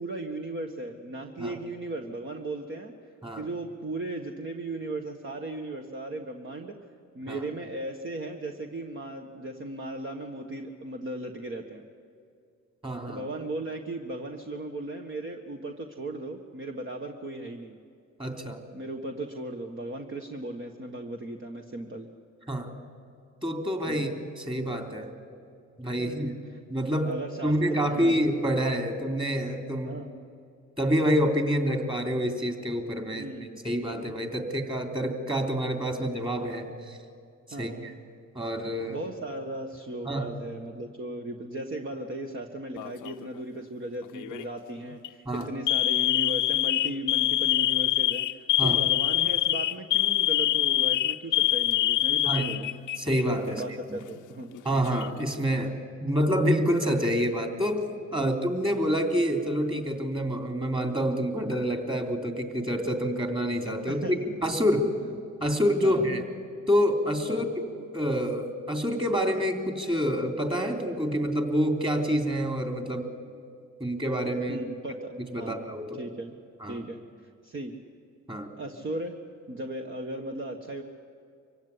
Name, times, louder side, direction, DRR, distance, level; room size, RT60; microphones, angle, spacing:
voice 1, 0.0-2.9 3.3-6.7 7.1-11.8 13.1-17.8 18.7-22.1 23.8-24.2 26.0-26.6 27.0-28.2 29.8-30.2 33.2-33.6 37.5-37.9 38.9-52.8 53.5-54.5 58.2-58.3 64.0-64.2 65.0-65.1 65.8-66.1 67.3-67.4 74.5-74.9 75.4-75.6 76.0-76.4 76.7-77.0 77.4-77.7 78.6-79.1 79.5-80.8, right 2 dB, 40° right, 3 dB, 1.6 m, -37 dB
voice 2, 12.8-13.2 18.2-18.6 22.5-22.7 23.4-24.1 24.4-25.1 25.8-26.4 26.7-27.2 27.4-30.0 30.8-33.3 33.6-37.0 37.6-37.9 38.3-39.0 40.0-40.3 45.2-45.5 48.6-48.8 52.2-52.5 53.0-53.6 54.6-55.7 56.0-57.8 58.1-64.9 65.4-66.2 66.7-67.6 67.9-73.1 73.8-74.6 75.3-75.8 76.6-76.8 78.3-78.5, equal, 15° right, 4 dB, 3.3 m, -27 dB
Alarm, 42.8-43.3 44.1-44.4 44.9-45.1 45.7-53.2 53.5-53.6 54.5-55.2, left 15 dB, 85° left, 0.7 m, -25 dB
25.0 x 16.0 x 9.7 m, 2.4 s
cardioid pair, 90°, 30 cm